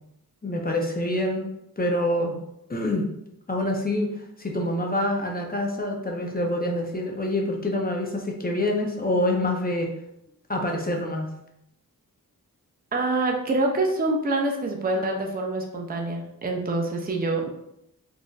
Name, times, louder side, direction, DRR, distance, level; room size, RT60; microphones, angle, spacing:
voice 1, 0.4-1.5 1.8-2.4 2.7-3.0 3.5-9.9 10.5-11.3, left 1 dB, 25° left, 1 dB, 0.6 m, -26 dB
voice 2, 12.9-17.5, right 2 dB, 25° right, 1 dB, 0.5 m, -26 dB
3.9 x 2.5 x 2.3 m, 0.79 s
wide cardioid pair, 85°, 37 cm